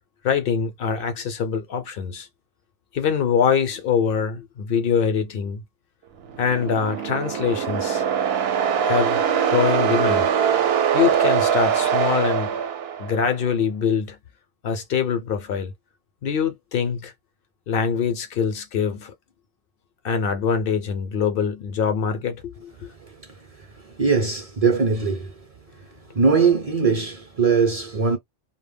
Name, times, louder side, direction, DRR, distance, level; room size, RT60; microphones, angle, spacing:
voice 1, 0.2-2.3 2.9-5.6 6.4-8.0 8.8-10.3 10.9-12.6 13.0-14.2 14.6-15.7 16.2-17.1 17.7-19.1 20.0-22.9, left 7 dB, 65° left, 0.7 m, -24 dB
sound 1, 6.3-13.3, right 8 dB, 70° right, 0.8 m, -22 dB
voice 2, 24.0-25.4 26.1-28.2, right 5 dB, 45° right, 0.6 m, -20 dB
2.1 x 2.0 x 3.2 m
omnidirectional pair, 1.1 m